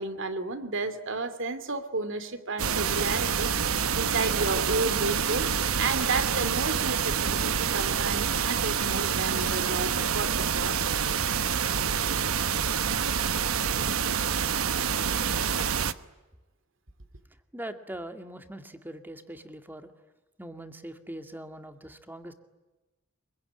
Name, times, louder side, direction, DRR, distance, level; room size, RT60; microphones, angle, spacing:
voice 1, 0.0-10.8, right 3 dB, 60° right, 10 dB, 2.8 m, -32 dB
sound 1, 2.6-15.9, right 7 dB, 75° right, 1.1 m, -27 dB
voice 2, 17.5-19.9 20.4-22.3, right 1 dB, 10° right, 7 dB, 2.0 m, -41 dB
25.5 x 23.0 x 10.0 m, 1.1 s
head